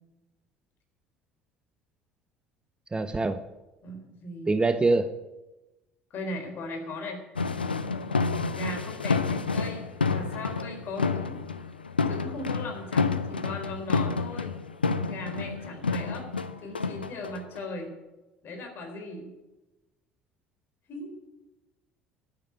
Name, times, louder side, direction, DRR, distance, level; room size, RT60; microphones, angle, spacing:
voice 1, 2.9-3.4 4.5-5.1, right 3 dB, 15° right, 12 dB, 0.7 m, -24 dB
voice 2, 3.8-4.6 6.1-7.2 8.5-11.4 12.1-14.6 15.1-16.3 16.6-17.9 18.4-19.3 20.9-21.1, left 2 dB, 45° left, 4 dB, 4.1 m, -38 dB
sound 1, 7.4-17.8, left 4 dB, 85° left, 0.5 m, -29 dB
12.0 x 10.0 x 8.3 m, 1.1 s
figure-of-eight pair, 60°, 5 cm